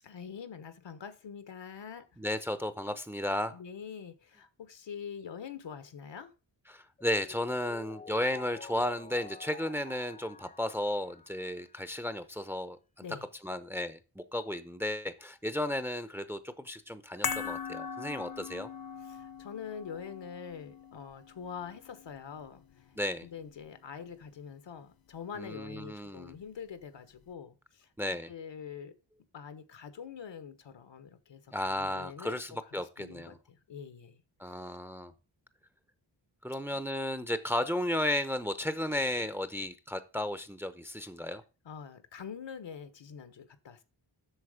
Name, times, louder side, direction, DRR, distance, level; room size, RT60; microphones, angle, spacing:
voice 1, 0.0-2.1 2.9-3.0 3.5-6.3 13.0-13.3 19.0-22.9 23.2-28.9 29.3-34.2 41.6-43.8, left 7 dB, 70° left, 1.3 m, -45 dB
voice 2, 2.2-3.6 6.7-13.0 13.4-18.7 23.0-23.3 25.4-26.3 28.0-28.3 31.5-33.4 34.4-35.1 36.4-41.4, left 1 dB, 5° right, 0.7 m, -34 dB
Mallet percussion, 7.0-11.9, left 6 dB, 20° left, 0.3 m, -50 dB
sound 1, 17.2-23.7 23.9-24.1, left 6 dB, 50° left, 0.7 m, -41 dB
8.0 x 6.4 x 5.0 m
wide cardioid pair, 105°, 45 cm